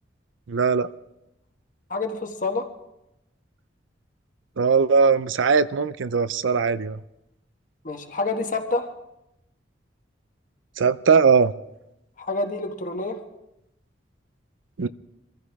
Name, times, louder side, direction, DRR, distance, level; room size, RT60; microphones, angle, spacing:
voice 1, 0.5-0.9 4.6-7.0 10.8-11.5 14.8-14.9, right 5 dB, 90° right, 15 dB, 0.6 m, -20 dB
voice 2, 1.9-2.7 7.8-8.9 12.2-13.2, left 3 dB, 45° left, 4 dB, 1.4 m, -27 dB
24.5 x 14.5 x 3.5 m, 0.89 s
head